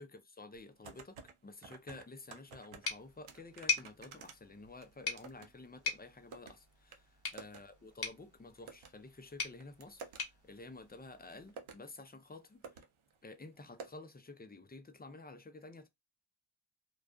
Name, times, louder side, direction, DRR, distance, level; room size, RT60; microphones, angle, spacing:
voice 1, 0.0-7.0 7.3-12.8 13.2-15.9, left 3 dB, 20° left, 0.5 m, -51 dB
sound 1, 0.5-1.3 1.6-2.9 3.3-5.5 5.8-6.6 6.9-7.0 7.3-7.6 7.9-8.0 8.7-8.9 9.4-10.2 11.1-11.2 11.5-11.8 12.3-12.4 12.6-12.9 13.1-13.2 13.8-13.9, right 5 dB, 80° right, 0.6 m, -51 dB
sound 2, 2.8-11.5, left 4 dB, 50° left, 1.2 m, -42 dB
2.4 x 2.2 x 2.3 m
cardioid pair, 55°, 48 cm